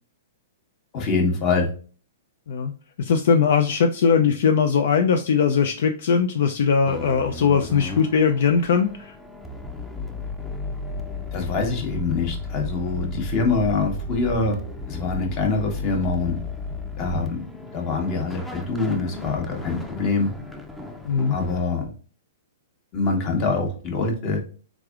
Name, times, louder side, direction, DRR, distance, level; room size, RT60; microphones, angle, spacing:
voice 1, 0.9-1.7 11.3-14.6 14.9-16.4 17.0-17.5 17.7-20.3 21.3-21.8 22.9-24.4, left 3 dB, 35° left, 3 dB, 1.1 m, -24 dB
voice 2, 3.0-9.1 21.1-21.4, left 6 dB, 65° left, 6 dB, 0.4 m, -20 dB
sound 1, 6.9-21.6, left 2 dB, 5° left, 0.5 m, -34 dB
3.6 x 3.2 x 2.4 m, 0.39 s
hypercardioid pair, 130°, 0 cm